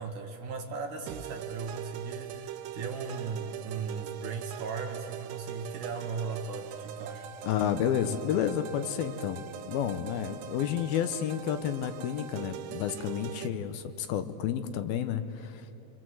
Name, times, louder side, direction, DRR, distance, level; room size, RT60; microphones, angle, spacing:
voice 1, 0.0-7.3, right 5 dB, 55° right, 3 dB, 2.8 m, -37 dB
sound 1, 1.1-13.5, right 11 dB, 80° right, 2.9 m, -42 dB
voice 2, 7.4-15.7, left 9 dB, 75° left, 9 dB, 2.6 m, -31 dB
28.5 x 25.0 x 7.8 m, 2.9 s
omnidirectional pair, 4.8 m